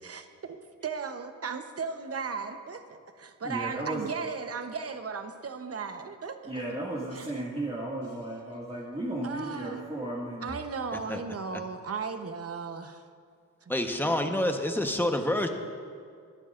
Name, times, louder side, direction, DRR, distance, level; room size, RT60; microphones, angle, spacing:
voice 1, 0.0-6.5 7.1-7.3 9.2-9.9 10.4-13.1 13.6-13.7 14.0-14.5, right 5 dB, 45° right, 1.0 m, -36 dB
voice 2, 3.4-4.1 6.5-10.6, right 1 dB, 20° right, 2.1 m, -34 dB
voice 3, 13.7-15.5, left 1 dB, 5° left, 1.1 m, -27 dB
22.5 x 11.5 x 2.6 m
cardioid pair, 80°, 33 cm